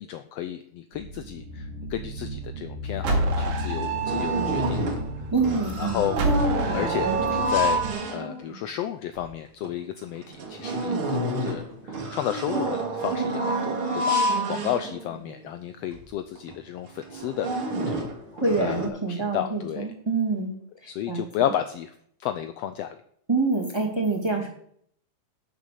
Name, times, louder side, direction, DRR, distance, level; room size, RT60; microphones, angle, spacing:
voice 1, 0.0-4.8 5.8-6.5 6.7-7.8 8.1-18.1 18.6-19.9 20.9-21.9 22.2-23.0, left 11 dB, 85° left, 10 dB, 1.4 m, -32 dB
sound 1, 1.0-7.9, right 2 dB, 75° right, 3.4 m, -29 dB
sound 2, 3.0-3.1 3.5-5.1 5.4-8.6 9.2-9.3 9.6-9.7 10.2-15.4 15.9-16.0 16.4-16.5 17.0-18.9, right 1 dB, 45° right, 2.6 m, -28 dB
voice 2, 5.3-6.1 18.3-21.5 23.3-24.5, right 3 dB, 10° right, 1 dB, 2.1 m, -26 dB
12.0 x 6.9 x 6.6 m, 0.65 s
omnidirectional pair, 3.6 m